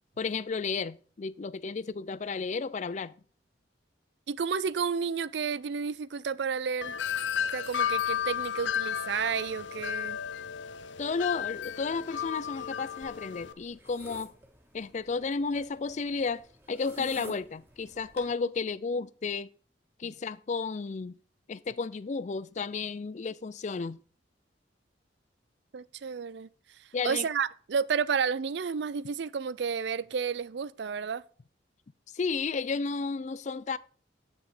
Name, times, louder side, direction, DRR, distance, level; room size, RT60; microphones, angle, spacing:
voice 1, 0.2-3.1 11.0-14.3 14.7-19.5 20.0-21.1 21.5-24.0 26.9-27.2 32.1-33.8, left 4 dB, 40° left, 0.4 m, -33 dB
voice 2, 4.3-6.9 7.5-10.2 17.0-17.3 20.0-20.1 25.7-26.5 27.0-31.2, right 6 dB, 65° right, 0.4 m, -31 dB
Wind chime, 6.8-13.5, left 9 dB, 80° left, 0.6 m, -33 dB
sound 1, 13.0-18.3, right 1 dB, 15° right, 1.7 m, -53 dB
9.4 x 6.1 x 4.9 m
head